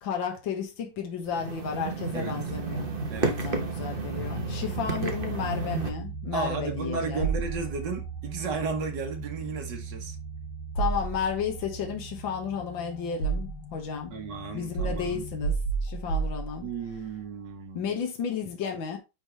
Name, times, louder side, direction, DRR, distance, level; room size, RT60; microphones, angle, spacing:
voice 1, 0.0-2.9 3.2-7.3 10.8-14.1 14.5-15.6 15.8-16.7 17.7-19.0, left 7 dB, 65° left, 2.2 m, -33 dB
sound 1, 1.3-5.9, right 3 dB, 35° right, 0.9 m, -32 dB
sound 2, 2.5-15.6, right 5 dB, 40° left, 2.7 m, -39 dB
voice 2, 3.1-3.5 6.3-10.2 14.1-15.2 16.6-18.0, right 4 dB, 60° right, 1.7 m, -34 dB
sound 3, 7.2-8.1 10.7-11.6 12.5-13.8 14.7-17.0, right 5 dB, 80° left, 4.3 m, -31 dB
9.9 x 3.9 x 3.2 m
omnidirectional pair, 2.4 m